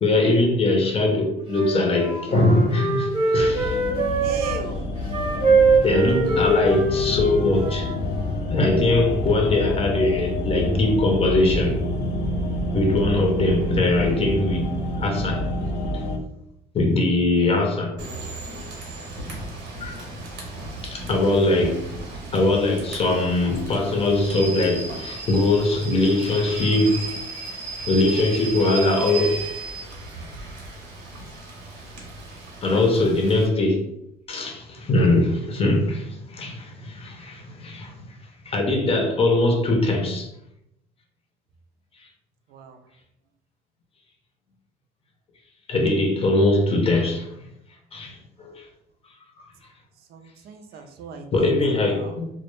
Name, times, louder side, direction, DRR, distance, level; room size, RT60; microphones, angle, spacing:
voice 1, 0.0-3.8 5.8-7.9 8.5-11.8 12.7-15.5 16.7-18.0 19.8-20.1 20.8-21.9 22.3-27.0 27.9-29.4 32.6-33.9 34.3-37.9 38.5-40.3 45.7-47.3 47.9-48.6 51.3-52.3, left 2 dB, 35° left, 0.6 m, -21 dB
Wind instrument woodwind instrument, 1.5-4.6 5.0-8.5, right 3 dB, 30° right, 0.7 m, -23 dB
sound 1, 3.4-16.2, left 1 dB, 90° left, 0.4 m, -28 dB
voice 2, 4.2-4.9 22.0-22.2 42.5-42.8 50.1-51.6 51.9-52.2, right 6 dB, 65° right, 0.4 m, -37 dB
Rain / Train, 18.0-33.5, right 3 dB, 90° right, 0.8 m, -35 dB
2.1 x 2.1 x 3.0 m
cardioid pair, 110°, 17 cm